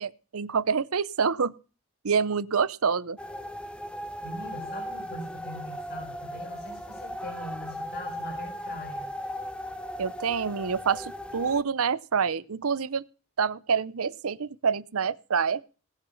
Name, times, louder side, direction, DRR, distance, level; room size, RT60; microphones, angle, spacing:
voice 1, 0.0-1.5 2.0-3.2 10.0-13.0 13.4-15.6, right 6 dB, 80° right, 18 dB, 0.7 m, -27 dB
sound 1, 3.2-11.6, equal, 5° left, 0.7 m, -37 dB
voice 2, 4.2-9.1, equal, 50° left, 4 dB, 4.5 m, -42 dB
19.0 x 7.1 x 5.6 m, 0.35 s
head